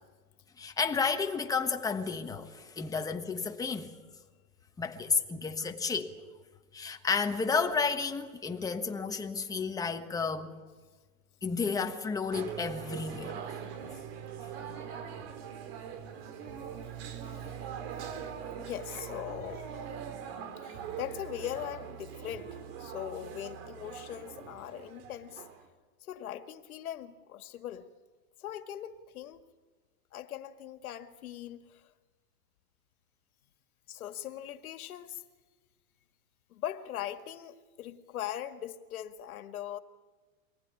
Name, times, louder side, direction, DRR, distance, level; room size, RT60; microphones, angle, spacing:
voice 1, 0.6-3.9 4.8-6.1 6.7-10.5 11.4-13.4, left 5 dB, 10° left, 1.3 m, -31 dB
sound 1, 12.3-25.7, right 8 dB, 45° right, 3.0 m, -42 dB
voice 2, 18.6-19.7 20.6-25.5 26.0-27.9 28.4-29.4 30.1-31.9 33.9-35.2 36.5-39.8, left 11 dB, 80° left, 1.9 m, -40 dB
24.5 x 19.5 x 9.8 m
supercardioid pair, 155°, 42 cm